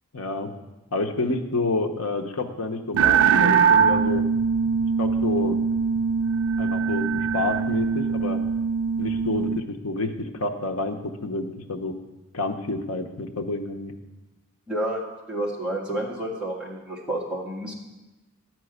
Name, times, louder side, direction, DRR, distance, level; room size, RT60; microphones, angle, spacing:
voice 1, 0.1-0.5 0.9-4.2 5.0-5.6 6.6-8.4 9.0-11.9 12.3-13.9, left 2 dB, 75° left, 5 dB, 0.9 m, -29 dB
sound 1, 2.9-9.6, right 6 dB, 70° right, 0.4 m, -22 dB
voice 2, 14.7-15.0 15.3-17.7, right 1 dB, 5° right, -5 dB, 1.8 m, -29 dB
11.0 x 4.6 x 8.0 m, 1.1 s
head